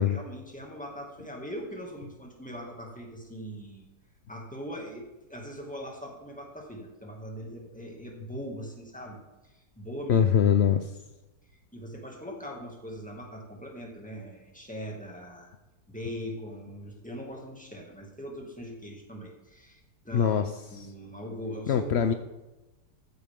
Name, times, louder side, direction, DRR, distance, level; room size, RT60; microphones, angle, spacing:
voice 1, 0.0-3.9 4.3-10.3 11.7-15.5 15.9-20.4 20.7-22.1, equal, 5° left, 0 dB, 2.2 m, -41 dB
voice 2, 10.1-10.8 20.1-20.4 21.7-22.1, left 8 dB, 75° left, 9 dB, 0.6 m, -22 dB
14.5 x 9.7 x 3.7 m, 1.0 s
omnidirectional pair, 1.9 m